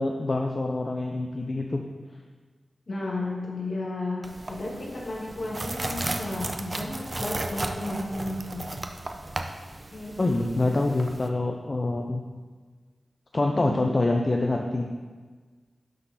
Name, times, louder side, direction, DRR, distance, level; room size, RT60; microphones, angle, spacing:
voice 1, 0.0-1.8 10.2-12.2 13.3-14.9, left 2 dB, 45° left, 2 dB, 0.6 m, -26 dB
voice 2, 2.9-8.7 9.9-10.5 13.5-13.8, left 2 dB, 60° left, -2 dB, 1.8 m, -33 dB
sound 1, 4.2-11.3, right 2 dB, 35° right, 0.7 m, -35 dB
11.5 x 3.9 x 4.1 m, 1.4 s
cardioid pair, 55°, 0 cm